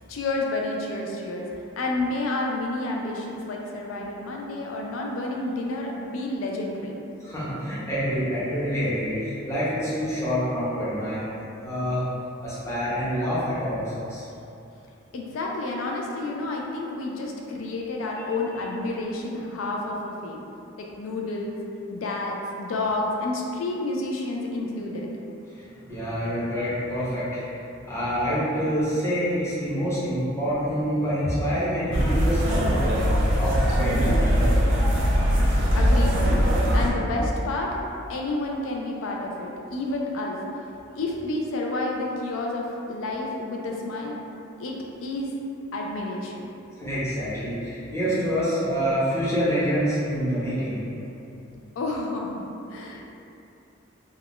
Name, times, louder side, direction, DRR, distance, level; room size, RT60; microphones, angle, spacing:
voice 1, 0.1-1.5 1.8-6.9 15.1-20.4 20.8-21.6 21.9-25.1 35.7-36.5 36.7-37.8 38.1-40.4 40.9-44.2 44.6-44.7 45.0-45.3 45.7-46.5 51.8-53.1, left 2 dB, 90° left, -1 dB, 0.3 m, -30 dB
voice 2, 7.2-12.0 12.4-14.3 25.6-27.4 27.8-32.8 33.3-34.6 46.8-50.8, equal, 15° left, -10 dB, 0.7 m, -27 dB
sound 1, 31.9-36.9, equal, 75° right, 0.5 m, -21 dB
2.4 x 2.2 x 3.5 m, 2.8 s
head